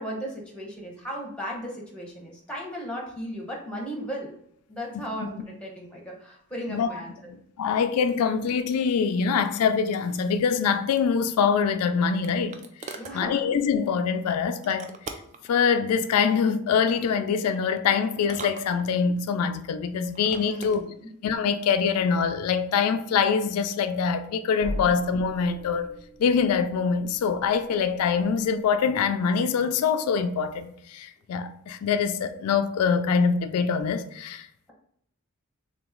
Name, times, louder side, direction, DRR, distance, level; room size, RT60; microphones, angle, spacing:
voice 1, 0.0-4.3 4.7-7.3 12.9-13.5 20.5-21.1 24.8-24.9, equal, 5° left, 0.8 m, -36 dB
voice 2, 6.7-7.0 7.6-12.6 12.8-14.9 15.5-20.8 21.2-25.9 26.2-34.5, left 6 dB, 85° left, 0.3 m, -24 dB
sound 1, 11.4-13.2 14.6-15.5 16.8-17.3 18.2-19.2 20.0-20.8, right 4 dB, 30° right, 0.3 m, -42 dB
sound 2, 24.6-29.3, equal, 70° right, 1.4 m, -41 dB
3.7 x 3.0 x 3.6 m
head